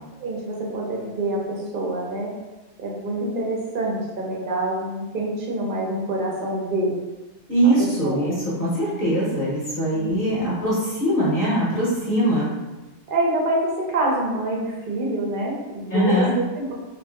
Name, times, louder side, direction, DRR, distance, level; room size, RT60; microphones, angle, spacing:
voice 1, 0.2-2.3 2.8-7.0 7.8-8.3 9.9-10.2 13.1-16.7, right 1 dB, 50° right, -3 dB, 0.8 m, -26 dB
voice 2, 7.5-12.5 15.9-16.3, right 1 dB, 50° left, -8 dB, 1.1 m, -22 dB
2.7 x 2.5 x 3.3 m, 1.1 s
omnidirectional pair, 1.3 m